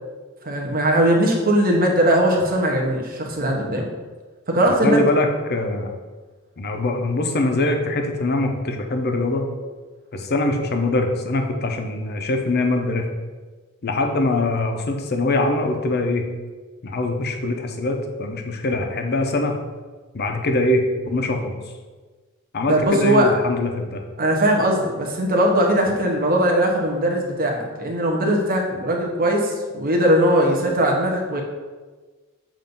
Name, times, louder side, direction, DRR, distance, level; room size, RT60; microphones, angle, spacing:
voice 1, 0.4-3.9 4.5-5.1 22.7-23.3 24.2-31.4, right 1 dB, 40° right, 0 dB, 1.0 m, -19 dB
voice 2, 4.7-5.9 6.6-9.5 10.1-13.1 13.8-16.2 16.8-19.6 20.1-21.6 22.5-24.0, left 2 dB, 45° left, 4 dB, 0.7 m, -23 dB
7.5 x 2.6 x 5.3 m, 1.3 s
head